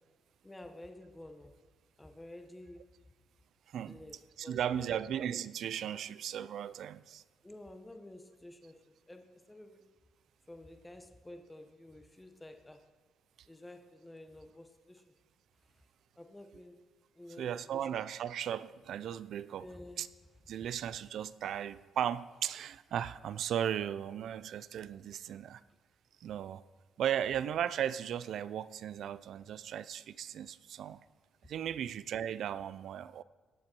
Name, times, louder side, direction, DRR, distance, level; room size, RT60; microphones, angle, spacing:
voice 1, 0.4-1.5 2.0-2.8 3.9-4.2 4.4-5.1 7.4-8.7 9.1-9.8 10.5-12.8 13.5-15.0 16.2-16.8 17.1-17.9 19.6-20.0, left 1 dB, 10° left, 1.0 m, -51 dB
voice 2, 4.4-7.2 17.4-19.7 20.0-20.1 20.5-25.6 26.2-26.6 27.0-31.0 31.4-33.2, right 9 dB, 70° right, 0.4 m, -36 dB
18.0 x 7.4 x 4.5 m
cardioid pair, 90°, 0 cm